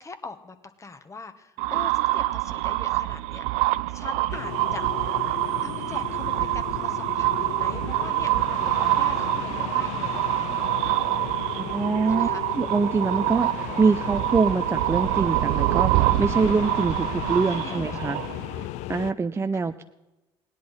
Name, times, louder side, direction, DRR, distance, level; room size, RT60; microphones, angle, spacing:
voice 1, 0.0-3.4 3.9-4.9 5.6-10.2 10.5-10.7 12.1-12.4 17.5-18.1 19.5-19.6, left 3 dB, 25° left, 9 dB, 1.3 m, -41 dB
sound 1, 1.6-18.6, right 18 dB, 70° right, 0.4 m, -26 dB
sound 2, 4.3-19.1, left 15 dB, 70° left, 0.5 m, -35 dB
voice 2, 11.6-12.3 12.5-18.2 18.9-19.8, right 4 dB, 20° right, 9 dB, 0.5 m, -24 dB
17.5 x 10.5 x 4.2 m, 1.0 s
hypercardioid pair, 65°, 12 cm